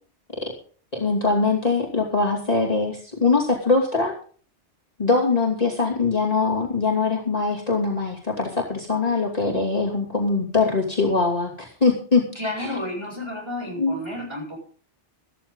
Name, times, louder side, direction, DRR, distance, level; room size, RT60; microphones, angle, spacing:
voice 1, 0.9-4.1 5.0-12.2 12.6-12.7 13.8-14.0, left 4 dB, 35° left, -2 dB, 2.8 m, -22 dB
voice 2, 12.4-14.6, left 1 dB, 25° right, 0 dB, 7.4 m, -31 dB
14.5 x 13.5 x 3.9 m, 0.42 s
omnidirectional pair, 1.2 m